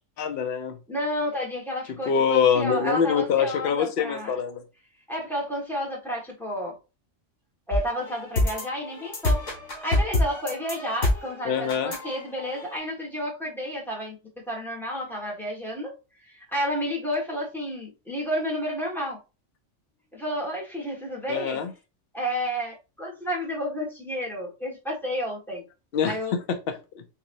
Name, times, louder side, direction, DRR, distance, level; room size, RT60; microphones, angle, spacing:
voice 1, 0.2-0.8 1.9-4.6 11.5-11.9 21.3-21.7 25.9-26.8, left 7 dB, 60° left, 8 dB, 0.8 m, -24 dB
voice 2, 0.9-4.3 5.1-6.7 7.7-9.4 9.8-15.9 16.3-19.2 20.1-21.6 22.1-25.6 26.0-26.4, equal, ahead, -4 dB, 1.4 m, -31 dB
sound 1, 7.7-12.8, left 1 dB, 85° left, 1.9 m, -27 dB
4.6 x 3.1 x 2.6 m, 0.29 s
omnidirectional pair, 1.2 m